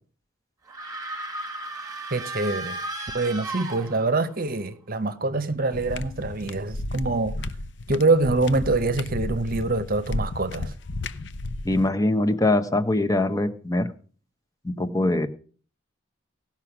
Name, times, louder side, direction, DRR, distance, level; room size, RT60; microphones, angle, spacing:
sound 1, 0.7-4.4, right 2 dB, 15° right, 1.4 m, -35 dB
voice 1, 2.1-2.8 3.1-7.4 7.9-10.7, right 3 dB, 45° right, 0.8 m, -25 dB
sound 2, 5.7-11.9, left 2 dB, 60° left, 0.6 m, -33 dB
voice 2, 11.6-13.9 14.6-15.3, left 2 dB, 15° left, 0.7 m, -23 dB
17.5 x 5.9 x 5.9 m
head